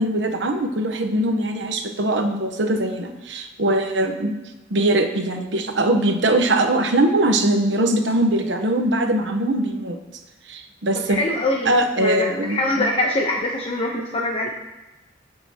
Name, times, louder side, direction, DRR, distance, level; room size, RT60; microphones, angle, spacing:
voice 1, 0.0-4.3 4.7-10.0 10.5-11.2 11.6-12.8, right 1 dB, 75° right, 5 dB, 1.1 m, -21 dB
voice 2, 11.1-14.5, left 1 dB, 30° left, -1 dB, 1.0 m, -24 dB
19.0 x 6.9 x 3.0 m, 1.1 s
head